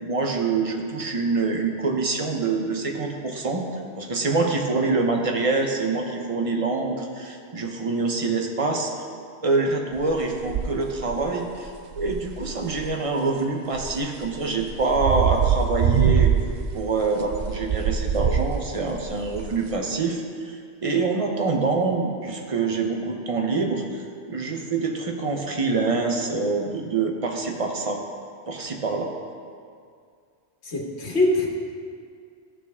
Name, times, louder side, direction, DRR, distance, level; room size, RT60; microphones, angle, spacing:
voice 1, 0.0-3.6 4.0-8.9 9.4-11.7 12.0-16.3 16.7-20.6 20.8-24.0 24.3-28.0 28.5-29.1, right 3 dB, 35° right, 2 dB, 0.9 m, -25 dB
sound 1, 10.0-10.1 10.3-11.2 11.6-12.9 13.7-19.7, right 8 dB, 55° right, 0.5 m, -24 dB
voice 2, 30.6-31.5, left 2 dB, 75° left, -2 dB, 1.6 m, -23 dB
14.0 x 6.1 x 3.6 m, 2.2 s
omnidirectional pair, 1.1 m